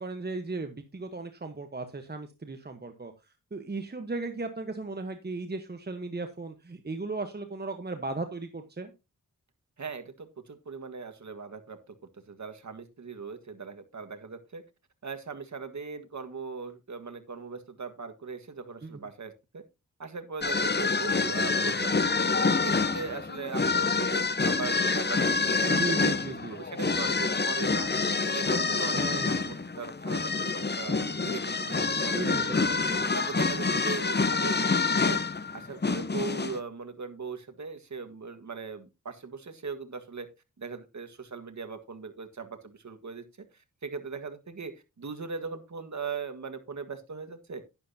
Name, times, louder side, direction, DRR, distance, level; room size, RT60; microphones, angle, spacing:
voice 1, 0.0-3.1 3.5-8.9 18.8-19.1 25.7-26.6 28.9-29.5 32.1-33.1, right 3 dB, 30° right, 7 dB, 1.2 m, -36 dB
voice 2, 9.8-12.0 12.3-14.6 15.0-19.6 20.0-22.3 22.6-26.0 26.5-27.9 28.2-29.2 29.5-32.8 33.1-35.2 35.5-40.3 40.6-47.6, right 5 dB, 55° right, 7 dB, 1.7 m, -39 dB
sound 1, 20.4-36.6, left 4 dB, 30° left, 0.9 m, -27 dB
11.0 x 10.5 x 2.8 m, 0.25 s
wide cardioid pair, 80°, 34 cm